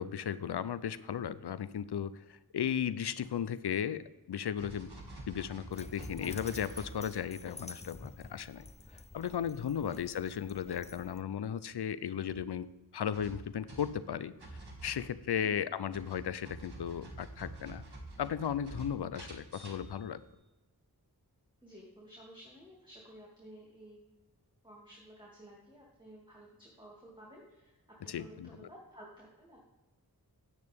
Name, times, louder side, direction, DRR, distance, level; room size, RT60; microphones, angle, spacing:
voice 1, 0.0-4.9 5.3-8.6 9.1-14.3 14.8-17.8 18.2-20.2 28.0-28.7, left 8 dB, 85° left, 16 dB, 0.6 m, -36 dB
sound 1, 4.6-7.4 7.7-8.0 11.6-11.7 12.1-12.4 13.1-15.5 15.9-20.3, right 2 dB, 85° right, 1.8 m, -48 dB
Dog, 5.7-11.2, left 3 dB, 15° left, 0.5 m, -49 dB
voice 2, 21.6-24.1 24.6-29.6, equal, 10° right, -4 dB, 2.6 m, -54 dB
10.0 x 9.4 x 3.5 m, 1.1 s
wide cardioid pair, 50°, 38 cm